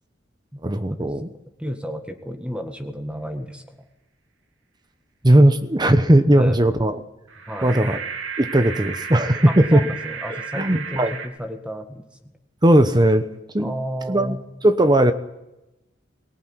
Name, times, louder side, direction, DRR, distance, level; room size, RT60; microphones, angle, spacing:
voice 1, 0.6-1.3 5.2-7.0 7.6-8.0 8.4-9.8 10.5-11.1 12.6-13.3 13.5-13.7 14.1-14.4 14.6-15.1, right 1 dB, 20° right, 10 dB, 1.1 m, -17 dB
voice 2, 1.6-3.9 6.3-6.6 7.5-7.8 9.5-12.3 13.6-14.4, equal, 5° right, 6 dB, 1.7 m, -32 dB
sound 1, 7.3-11.3, right 5 dB, 90° right, 3.0 m, -33 dB
22.5 x 19.5 x 9.6 m, 0.95 s
head